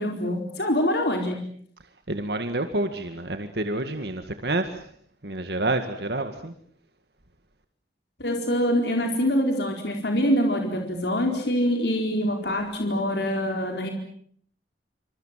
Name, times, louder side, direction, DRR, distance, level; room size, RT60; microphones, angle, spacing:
voice 1, 0.0-1.4 8.2-13.9, equal, 70° left, 3 dB, 4.4 m, -25 dB
voice 2, 2.1-4.9 5.2-6.5, right 2 dB, 65° right, 7 dB, 2.0 m, -28 dB
27.0 x 27.0 x 7.6 m, 0.62 s
head